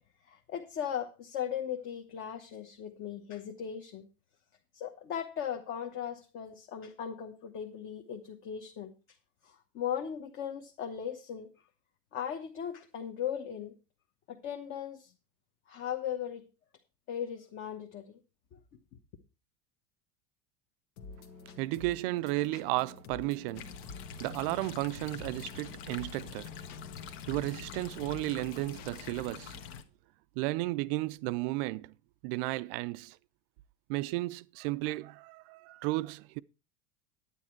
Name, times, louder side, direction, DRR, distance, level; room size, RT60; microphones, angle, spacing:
voice 1, 0.3-4.1 4.7-8.9 9.4-11.5 12.1-13.7 14.3-15.1 15.7-16.4 17.1-18.2, left 9 dB, 35° left, 1.1 m, -38 dB
time break, 21.0-29.3, left 4 dB, 80° left, 1.7 m, -50 dB
voice 2, 21.6-23.7 24.2-26.6 27.1-29.6 30.4-31.9 32.2-33.2 33.9-36.4, right 19 dB, 50° right, 0.5 m, -33 dB
sound 1, 23.5-29.8, left 7 dB, 60° left, 1.4 m, -45 dB
9.8 x 9.6 x 4.5 m
supercardioid pair, 170°, 36 cm